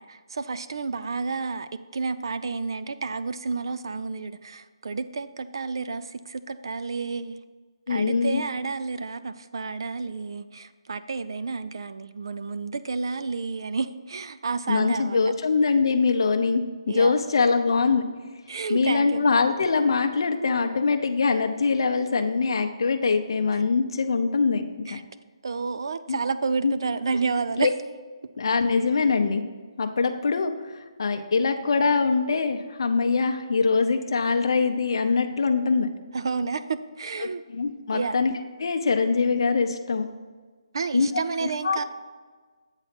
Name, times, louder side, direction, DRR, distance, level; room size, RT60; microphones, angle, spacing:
voice 1, 0.0-7.4 7.9-15.2 16.9-17.1 18.5-19.3 24.9-25.0 25.4-27.7 36.1-37.4 37.9-38.2 40.7-41.8, right 4 dB, 50° right, 13 dB, 0.3 m, -30 dB
voice 2, 7.9-8.4 14.7-18.0 18.7-25.0 26.1-26.2 26.6-26.7 27.6-27.7 28.4-29.4 29.8-35.9 37.5-38.3 38.6-40.1 40.9-41.1 41.4-41.8, left 4 dB, 50° left, 5 dB, 0.6 m, -23 dB
8.1 x 4.1 x 5.9 m, 1.4 s
hypercardioid pair, 175°, 3 cm